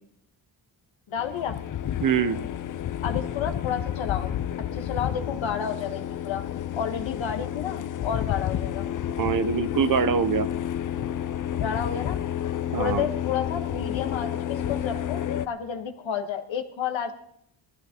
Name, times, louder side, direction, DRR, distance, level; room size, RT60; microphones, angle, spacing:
voice 1, 1.1-1.6 3.0-4.3 4.7-6.4 6.7-8.9 11.6-12.2 12.8-17.1, left 7 dB, 90° left, 5 dB, 1.4 m, -31 dB
sound 1, 1.2-15.5, left 10 dB, 45° left, 0.4 m, -30 dB
voice 2, 2.0-2.4 9.2-10.5 12.7-13.1, right 6 dB, 50° right, 11 dB, 0.7 m, -24 dB
19.0 x 14.0 x 2.9 m, 0.73 s
wide cardioid pair, 125°, 45 cm